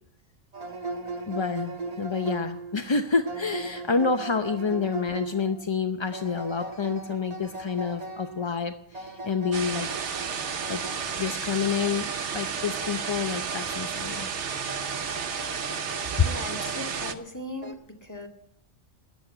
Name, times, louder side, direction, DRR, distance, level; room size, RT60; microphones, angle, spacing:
sound 1, 0.5-17.7, right 3 dB, 30° right, 1.4 m, -39 dB
voice 1, 1.3-9.9 10.7-10.8 11.2-12.1 12.3-14.3, left 5 dB, 35° left, 8 dB, 0.5 m, -28 dB
sound 2, 9.5-17.1, right 6 dB, 65° right, 1.3 m, -32 dB
voice 2, 16.2-18.3, left 1 dB, 15° left, 2 dB, 2.1 m, -38 dB
13.5 x 10.0 x 9.0 m, 0.72 s
omnidirectional pair, 1.3 m